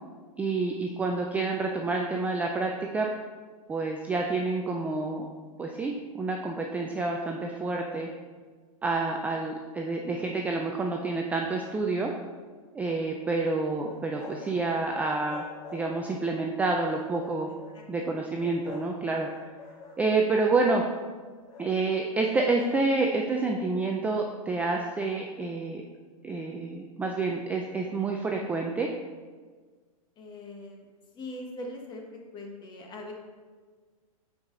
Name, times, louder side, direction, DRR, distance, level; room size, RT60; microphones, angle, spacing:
voice 1, 0.4-3.1 3.7-5.2 5.6-8.1 8.8-12.1 12.7-15.4 15.7-17.5 17.9-19.5 20.0-20.8 21.6-25.8 26.2-28.9, right 3 dB, 10° right, 1 dB, 0.3 m, -28 dB
sound 1, 13.8-16.2 16.8-17.8 18.4-19.0 19.2-20.7 21.4-21.7, left 4 dB, 85° left, 2.0 m, -46 dB
voice 2, 17.5-17.8 18.4-18.5 30.2-30.8 31.1-33.1, left 1 dB, 25° left, 1 dB, 1.2 m, -42 dB
8.6 x 4.8 x 3.8 m, 1.5 s
hypercardioid pair, 135°, 18 cm